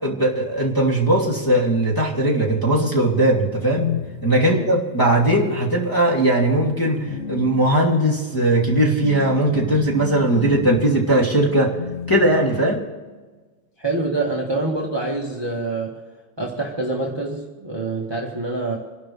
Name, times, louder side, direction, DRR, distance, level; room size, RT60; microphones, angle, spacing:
voice 1, 0.0-3.9 4.2-11.7 12.1-12.8, right 1 dB, 10° left, -5 dB, 2.5 m, -19 dB
sound 1, 3.4-4.6 5.6-5.9 6.4-12.8, left 7 dB, 50° left, 1.2 m, -32 dB
voice 2, 13.8-16.0 16.4-18.8, right 2 dB, 15° right, -2 dB, 1.8 m, -26 dB
28.0 x 12.0 x 3.4 m, 1.3 s
omnidirectional pair, 2.1 m